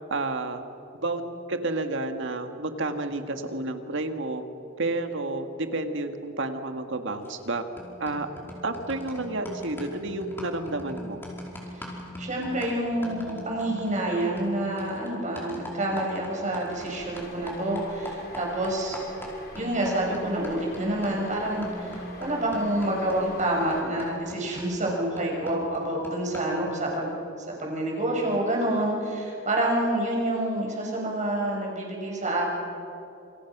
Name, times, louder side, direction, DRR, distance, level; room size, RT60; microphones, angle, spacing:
voice 1, 0.1-0.6 0.9-4.4 4.8-7.6 8.0-8.3 8.6-11.2, right 2 dB, 65° right, 6 dB, 2.0 m, -30 dB
sound 1, 7.3-7.5 7.8-16.9 17.2-26.7, left 1 dB, 10° left, 4.8 m, -41 dB
voice 2, 11.7-19.0 19.6-27.1 27.6-32.5, right 1 dB, 40° right, -1 dB, 6.7 m, -28 dB
sound 2, 16.7-23.8, left 1 dB, 50° left, 4.6 m, -44 dB
28.0 x 27.0 x 6.2 m, 2.9 s
head